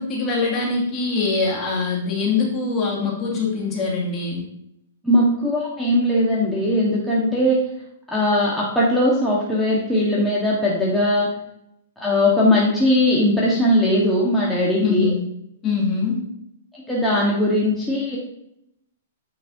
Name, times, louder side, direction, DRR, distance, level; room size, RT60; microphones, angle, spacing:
voice 1, 0.0-4.4 14.8-15.2 15.6-16.2, left 4 dB, 25° left, -3 dB, 2.2 m, -23 dB
voice 2, 5.0-7.6 8.1-11.3 12.0-15.1 16.7-18.2, left 1 dB, 5° left, -6 dB, 1.3 m, -19 dB
8.5 x 5.1 x 2.7 m, 0.77 s
hypercardioid pair, 135°, 0 cm